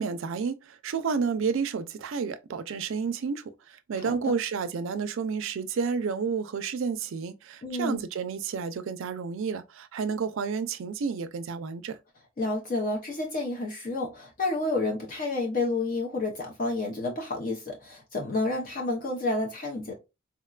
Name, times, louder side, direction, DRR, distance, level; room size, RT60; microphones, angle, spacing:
voice 1, 0.0-12.0, right 5 dB, 65° right, 0.4 m, -31 dB
voice 2, 7.6-8.0 12.4-19.9, left 2 dB, 40° left, 0.6 m, -30 dB
3.8 x 2.2 x 2.3 m
head